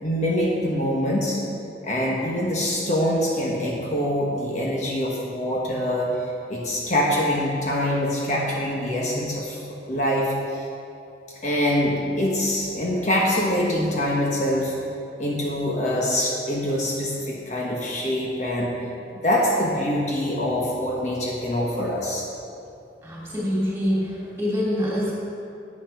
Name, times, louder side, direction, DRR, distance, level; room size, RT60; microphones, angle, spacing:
voice 1, 0.0-1.4 1.8-6.1 6.5-9.6 9.9-10.6 11.4-14.7 15.2-18.7 19.1-22.2, left 1 dB, 40° left, -3 dB, 1.4 m, -24 dB
voice 2, 23.0-25.1, equal, 15° right, -6 dB, 3.1 m, -25 dB
9.9 x 8.7 x 5.9 m, 2.6 s
head